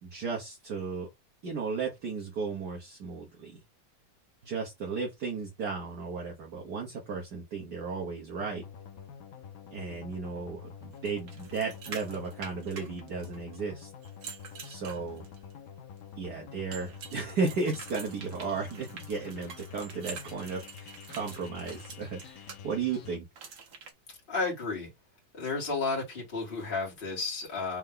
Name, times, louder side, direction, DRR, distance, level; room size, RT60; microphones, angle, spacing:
voice 1, 0.0-1.1 1.4-3.6 4.4-8.6 9.7-13.9 14.6-15.2 16.2-23.2, right 4 dB, 60° right, 1.7 m, -35 dB
sound 1, 8.4-23.2, left 7 dB, 65° left, 0.9 m, -48 dB
sound 2, 11.1-13.6 14.0-15.5 16.7-22.6 23.4-23.9, right 5 dB, 75° right, 1.9 m, -46 dB
voice 2, 24.3-24.9 25.3-27.8, left 3 dB, 30° left, 2.0 m, -32 dB
4.5 x 3.0 x 3.8 m
omnidirectional pair, 2.1 m